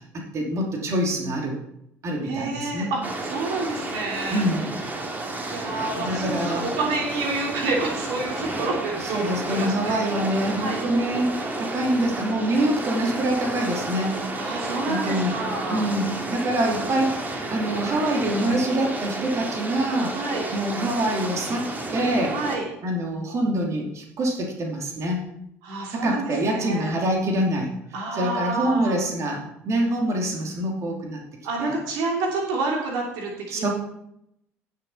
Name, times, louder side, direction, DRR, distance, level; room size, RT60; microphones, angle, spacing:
voice 1, 0.3-1.6 2.0-2.9 4.3-4.6 5.9-6.6 9.0-14.2 14.9-15.3 15.7-17.2 17.5-20.2 20.5-21.7 21.9-22.4 22.8-25.2 25.9-27.7 28.1-31.2 31.6-31.8 33.5-33.7, right 1 dB, 40° right, 0 dB, 3.0 m, -25 dB
voice 2, 2.2-4.5 5.5-10.2 10.6-10.8 14.4-15.9 20.1-20.5 22.3-22.7 25.6-26.9 27.9-28.9 31.4-33.6, right 3 dB, 65° right, -1 dB, 2.8 m, -29 dB
sound 1, 3.0-22.6, right 2 dB, 25° right, 2.8 m, -31 dB
18.0 x 6.8 x 4.2 m, 0.78 s
figure-of-eight pair, 60°, 8 cm